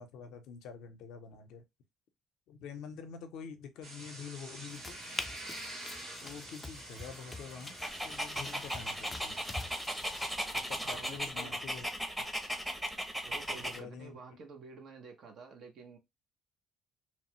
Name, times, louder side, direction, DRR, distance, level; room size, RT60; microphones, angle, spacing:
voice 1, 0.0-1.6 2.5-5.0 6.2-7.8 8.0-9.4 10.5-11.9 13.5-14.4, left 6 dB, 80° left, 0.5 m, -46 dB
sound 1, 3.8-10.4, right 1 dB, 80° right, 1.6 m, -47 dB
sound 2, 4.7-11.3, left 3 dB, 25° left, 0.4 m, -46 dB
Dog, 7.8-13.8, equal, 5° right, 0.7 m, -37 dB
voice 2, 10.8-11.6 13.2-16.0, right 4 dB, 65° right, 0.8 m, -50 dB
3.0 x 2.0 x 2.9 m
supercardioid pair, 80°, 0 cm